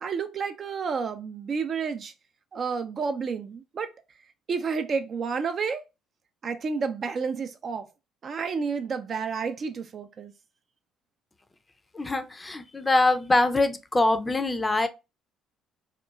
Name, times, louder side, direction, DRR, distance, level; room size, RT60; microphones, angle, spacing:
voice 1, 0.0-2.1 2.5-3.9 4.5-5.8 6.4-7.8 8.2-10.3, right 5 dB, 50° right, 0.4 m, -30 dB
voice 2, 11.9-14.9, left 2 dB, 20° left, 0.4 m, -23 dB
2.8 x 2.2 x 2.3 m
hypercardioid pair, 60°, 0 cm